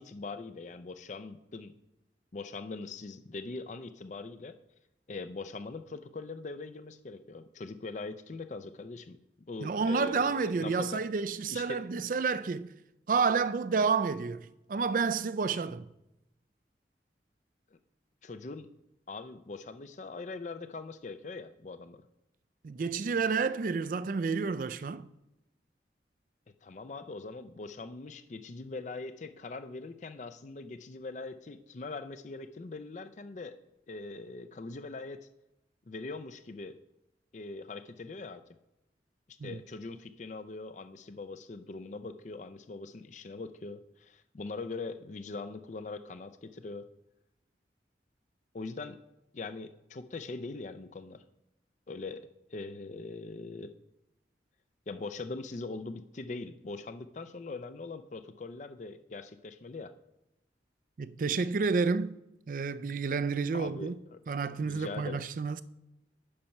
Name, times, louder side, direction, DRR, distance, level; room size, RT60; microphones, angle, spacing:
voice 1, 0.0-1.7 2.3-4.6 5.1-9.2 9.5-11.0 11.5-11.8 18.2-18.7 19.1-22.0 26.6-33.6 33.9-35.2 35.9-36.8 37.3-38.4 39.3-46.9 48.5-49.0 49.3-51.2 51.9-53.7 54.9-59.9 63.5-64.2 64.5-65.2, left 3 dB, 40° left, 0.4 m, -42 dB
voice 2, 9.6-12.7 13.1-15.9 22.6-25.1 39.4-39.6 61.0-62.1 62.5-64.0 64.3-65.6, right 5 dB, 50° right, 0.4 m, -30 dB
8.6 x 5.8 x 5.4 m
head